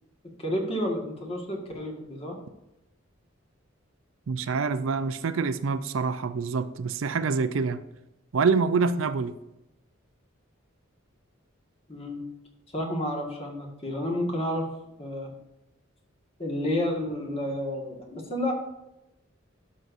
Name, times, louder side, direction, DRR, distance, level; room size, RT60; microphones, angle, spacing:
voice 1, 0.4-2.4 11.9-12.2 12.7-15.3 16.4-18.5, left 1 dB, 30° left, 0 dB, 1.7 m, -30 dB
voice 2, 4.3-7.8 8.3-9.3, right 4 dB, 80° right, 12 dB, 0.5 m, -26 dB
12.0 x 6.3 x 2.6 m, 0.92 s
head